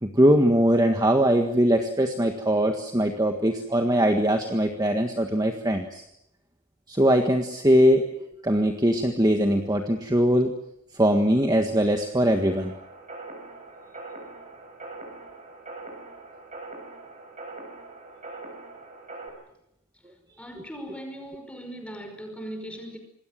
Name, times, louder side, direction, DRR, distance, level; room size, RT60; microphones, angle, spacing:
voice 1, 0.0-6.0 6.9-8.1 8.4-10.5 11.0-12.7, equal, 15° right, 4 dB, 1.6 m, -21 dB
sound 1, 12.4-19.3, right 3 dB, 35° right, 6.7 m, -42 dB
voice 2, 20.4-23.0, equal, 5° left, 5 dB, 5.4 m, -39 dB
26.5 x 21.0 x 7.6 m, 0.80 s
head